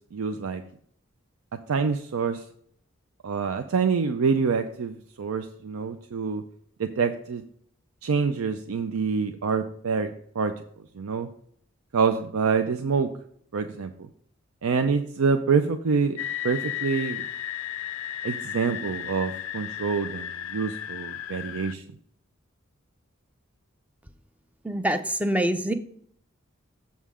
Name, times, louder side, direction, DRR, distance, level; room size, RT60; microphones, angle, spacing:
voice 1, 0.1-0.6 1.7-2.4 3.2-6.4 6.8-7.4 8.0-10.5 11.0-11.3 11.9-13.1 13.5-13.9 14.6-16.2 16.4-17.2 18.2-21.8, right 5 dB, 85° right, 8 dB, 0.5 m, -26 dB
sound 1, 16.2-21.7, left 11 dB, 75° left, 0.3 m, -34 dB
voice 2, 24.6-25.7, right 1 dB, 5° right, 9 dB, 0.4 m, -25 dB
7.2 x 5.6 x 4.8 m, 0.65 s
head